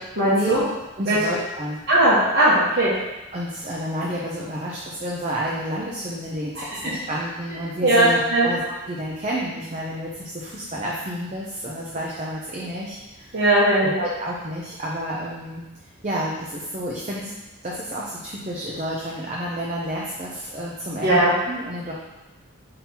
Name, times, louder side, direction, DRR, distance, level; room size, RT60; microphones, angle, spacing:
voice 1, 0.2-0.6 1.1-1.2 1.9-2.9 6.8-7.0 7.8-8.5 13.3-14.0 21.0-21.3, right 1 dB, 55° right, -10 dB, 1.3 m, -18 dB
voice 2, 1.0-1.8 3.3-13.4 13.8-15.6 16.0-17.3 17.6-21.9, equal, 30° right, -5 dB, 0.7 m, -30 dB
5.6 x 3.9 x 4.4 m, 1.0 s
head